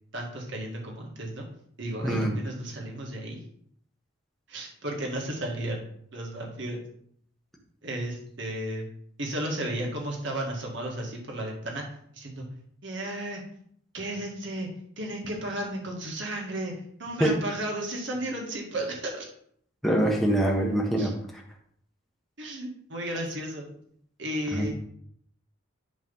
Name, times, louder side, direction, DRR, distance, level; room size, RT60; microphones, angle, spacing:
voice 1, 0.1-1.4 1.8-3.4 4.5-5.9 6.1-6.8 7.8-8.9 9.2-11.8 12.1-12.5 12.8-13.4 13.9-14.7 15.0-16.7 17.0-19.3 21.0-21.1 22.4-23.7 24.2-24.7, right 1 dB, 60° right, -1 dB, 2.0 m, -33 dB
voice 2, 2.0-2.4 17.2-17.4 19.8-21.1 24.5-24.6, right 1 dB, ahead, -1 dB, 1.3 m, -24 dB
10.5 x 3.5 x 5.5 m, 0.66 s
head